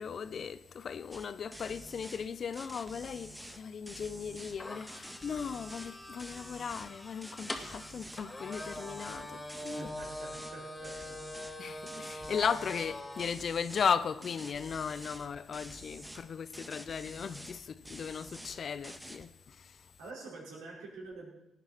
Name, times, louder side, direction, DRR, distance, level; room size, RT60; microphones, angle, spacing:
voice 1, 0.0-9.9 11.6-19.8, left 6 dB, 55° left, 0.8 m, -36 dB
sound 1, 1.1-1.3 1.5-2.3 2.5-4.6 4.9-5.9 6.2-6.9 7.2-8.2 8.5-10.6 10.8-11.6 11.9-12.9 13.2-13.9 14.2-15.3 15.5-16.2 16.5-17.6 17.8-18.6 18.8-19.3, right 1 dB, 5° right, 1.7 m, -48 dB
sound 2, 4.6-13.3, left 1 dB, 20° left, 2.6 m, -43 dB
voice 2, 9.8-11.2 20.0-21.3, right 3 dB, 75° right, 5.2 m, -47 dB
18.0 x 9.5 x 5.9 m
hypercardioid pair, 40°, 0 cm